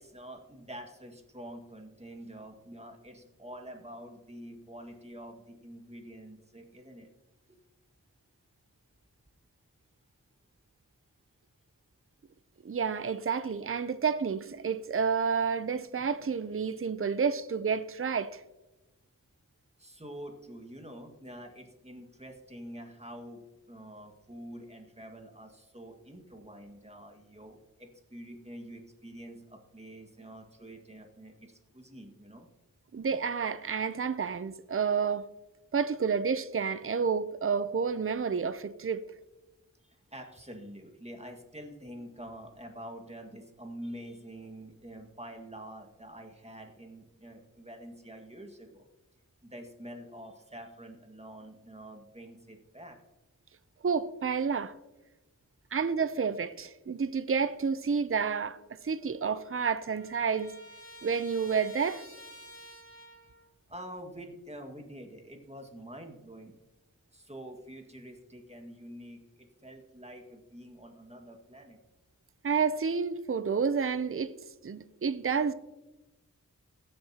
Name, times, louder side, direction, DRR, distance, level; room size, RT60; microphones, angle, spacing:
voice 1, 0.0-7.1 19.8-32.5 39.8-48.8 49.4-53.0 63.7-66.5 67.1-71.8, right 1 dB, 20° right, 1.9 m, -47 dB
voice 2, 12.6-18.4 32.9-35.3 35.7-39.0 53.8-54.7 55.7-58.6 58.8-60.5 61.0-62.0 72.4-74.3 74.6-75.5, right 6 dB, 40° right, 0.6 m, -30 dB
Trumpet, 59.0-63.5, equal, 40° left, 2.4 m, -51 dB
20.0 x 7.6 x 2.9 m
wide cardioid pair, 45°, 33 cm